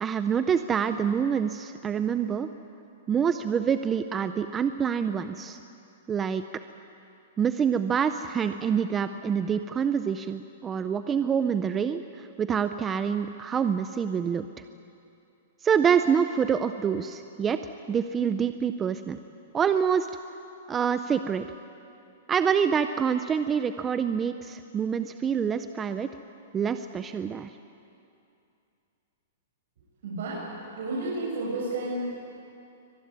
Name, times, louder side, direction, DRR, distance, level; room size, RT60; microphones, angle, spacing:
voice 1, 0.0-2.5 3.1-5.6 6.1-6.4 7.4-14.5 15.6-17.6 17.9-19.2 19.5-20.1 20.7-21.5 22.3-26.1 26.5-27.5, right 7 dB, 10° right, 10 dB, 0.5 m, -26 dB
voice 2, 30.0-30.4 30.7-32.2, right 2 dB, 60° right, -6 dB, 7.9 m, -31 dB
23.5 x 19.5 x 9.6 m, 2.6 s
hypercardioid pair, 175°, 0 cm